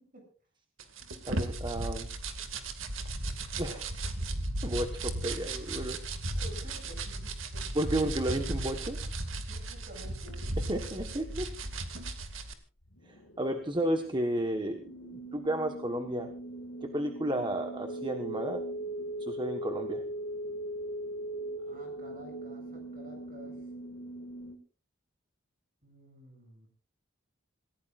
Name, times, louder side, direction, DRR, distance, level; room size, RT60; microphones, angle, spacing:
sound 1, 0.8-12.5, right 2 dB, 70° right, 2.2 m, -36 dB
voice 1, 1.2-2.1 3.6-4.0 4.6-6.0 7.7-9.0 10.7-11.5 13.0-16.3 16.8-18.6 19.2-20.0, right 1 dB, 25° right, 5 dB, 1.3 m, -32 dB
voice 2, 6.3-7.6 9.5-10.5 21.6-23.6 25.8-26.7, equal, 45° right, 3 dB, 7.9 m, -51 dB
sound 2, 12.8-24.6, right 1 dB, 80° left, 2.1 m, -40 dB
27.5 x 16.5 x 2.5 m, 0.39 s
head